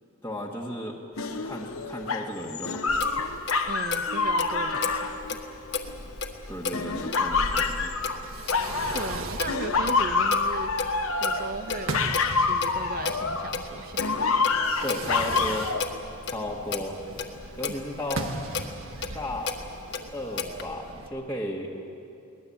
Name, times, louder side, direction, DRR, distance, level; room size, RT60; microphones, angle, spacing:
voice 1, 0.2-1.0 1.3-2.9 6.5-7.9 14.8-15.7 16.2-17.0 17.6-18.3 19.1-19.6 20.1-21.7, left 1 dB, 10° left, -4 dB, 1.7 m, -34 dB
sound 1, 1.2-6.2 6.7-9.2 9.5-13.6 14.0-15.8, left 4 dB, 85° left, 1.3 m, -27 dB
Clock, 2.9-20.6, left 4 dB, 55° left, 1.7 m, -35 dB
voice 2, 3.7-5.4 8.9-14.2, right 3 dB, 45° right, 13 dB, 0.6 m, -37 dB
Fireworks, 8.0-21.1, right 2 dB, 80° right, 1.7 m, -39 dB
23.0 x 19.5 x 8.8 m, 2.7 s
head